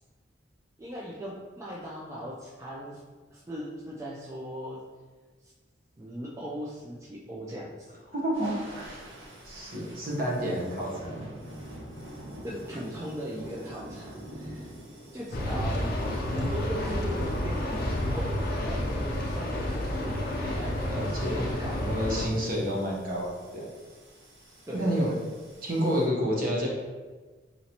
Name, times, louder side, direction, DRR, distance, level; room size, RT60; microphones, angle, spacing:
voice 1, 0.8-3.0 3.3-4.8 5.4-5.5 6.0-8.0 12.4-14.7 15.1-15.9 16.3-22.0 22.4-22.5 24.7-25.2, equal, 15° right, -6 dB, 0.4 m, -39 dB
voice 2, 8.1-9.0 9.4-11.1 15.4-15.8 20.9-21.5 21.9-23.7 24.7-25.1 25.6-26.7, equal, 50° right, -4 dB, 0.9 m, -29 dB
sound 1, 8.3-26.1, right 1 dB, 85° right, 1.4 m, -47 dB
sound 2, 15.3-22.3, left 1 dB, 55° left, 0.6 m, -30 dB
4.1 x 3.0 x 2.8 m, 1.4 s
head